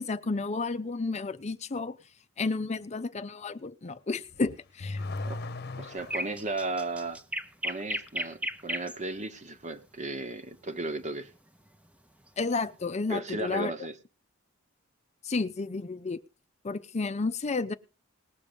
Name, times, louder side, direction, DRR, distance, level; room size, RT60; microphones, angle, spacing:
voice 1, 0.0-2.0 2.4-5.0 12.4-13.7 15.2-16.2 16.6-17.7, left 3 dB, 35° left, 0.6 m, -31 dB
Car / Accelerating revving vroom, 4.2-6.5, left 2 dB, 50° left, 1.0 m, -37 dB
voice 2, 5.8-7.2 7.6-11.3 13.1-13.9, right 2 dB, 35° right, 1.2 m, -35 dB
sound 1, 6.0-9.0 11.0-11.3, equal, 5° right, 0.8 m, -34 dB
19.5 x 6.8 x 5.2 m
head